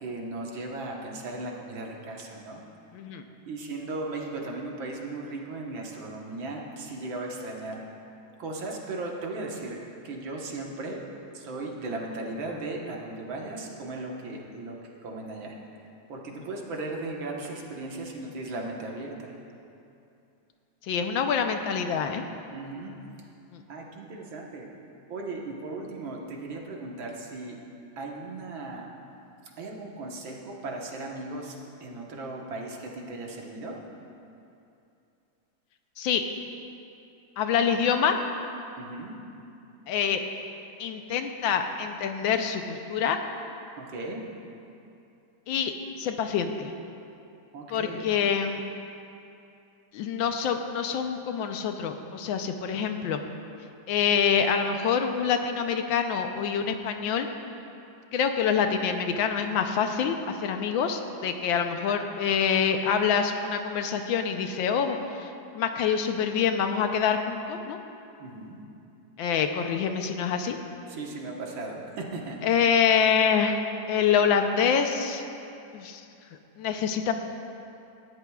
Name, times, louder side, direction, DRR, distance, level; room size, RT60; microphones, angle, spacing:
voice 1, 0.0-2.6 3.5-7.8 8.4-11.0 11.3-15.6 16.1-19.3 22.5-22.9 23.7-24.7 25.1-27.6 28.0-28.9 29.6-33.8 38.8-39.2 43.8-44.2 47.5-48.0 68.2-68.6 70.9-72.6, right 2 dB, 85° right, -1 dB, 2.1 m, -37 dB
voice 2, 2.9-3.2 20.9-22.2 23.5-23.6 36.0-36.2 37.4-38.2 39.9-40.2 40.8-43.2 45.5-46.7 47.7-48.6 49.9-53.2 53.9-57.3 58.1-65.3 65.5-67.8 69.2-70.6 72.4-73.6 73.9-75.3 75.7-76.0 76.6-77.1, left 7 dB, 85° left, 6 dB, 1.5 m, -26 dB
18.5 x 13.0 x 2.3 m, 2.7 s
omnidirectional pair, 2.1 m